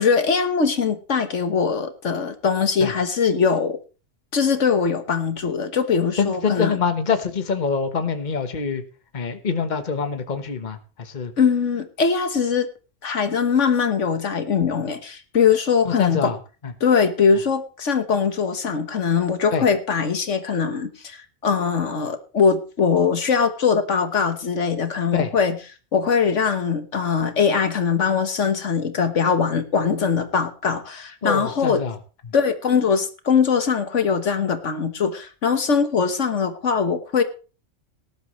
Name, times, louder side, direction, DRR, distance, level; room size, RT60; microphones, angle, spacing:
voice 1, 0.0-3.8 4.3-6.8 11.4-12.7 13.0-16.3 16.8-25.6 25.9-31.8 32.3-37.2, left 6 dB, 70° left, 9 dB, 1.6 m, -21 dB
voice 2, 6.2-8.8 9.1-11.3 15.8-16.4 19.5-19.6 25.1-25.3 31.2-32.0, left 5 dB, 40° left, 8 dB, 1.3 m, -25 dB
18.5 x 11.5 x 3.1 m, 0.34 s
omnidirectional pair, 1.3 m